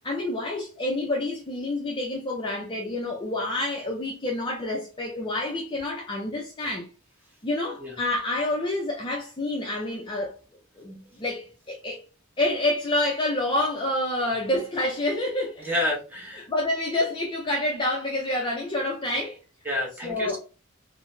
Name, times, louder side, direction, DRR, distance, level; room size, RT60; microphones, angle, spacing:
voice 1, 0.0-6.9 7.4-10.3 10.8-12.0 12.4-15.7 16.5-19.4 20.0-20.4, left 1 dB, 20° left, 0.4 m, -28 dB
voice 2, 15.6-16.5 19.6-20.4, left 1 dB, 10° right, 0.7 m, -29 dB
3.7 x 2.0 x 2.5 m
head